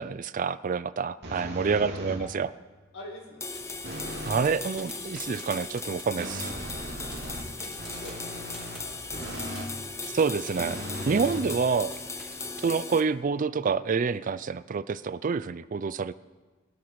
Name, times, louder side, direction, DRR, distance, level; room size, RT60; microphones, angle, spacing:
voice 1, 0.0-2.5 4.3-6.5 10.1-10.8 11.1-11.9 12.6-16.1, right 5 dB, 40° right, 16 dB, 0.4 m, -27 dB
sound 1, 1.2-2.4 3.8-4.5 6.2-9.8 10.5-12.0, equal, 55° right, 2.9 m, -38 dB
voice 2, 1.5-2.3 2.9-3.6 7.1-9.6 12.3-12.5, left 1 dB, 70° left, -1 dB, 4.6 m, -48 dB
sound 2, 3.4-13.0, left 3 dB, 15° left, 0.7 m, -38 dB
sound 3, 3.5-12.6, equal, ahead, 5.5 m, -50 dB
22.5 x 12.5 x 4.7 m, 1.3 s
head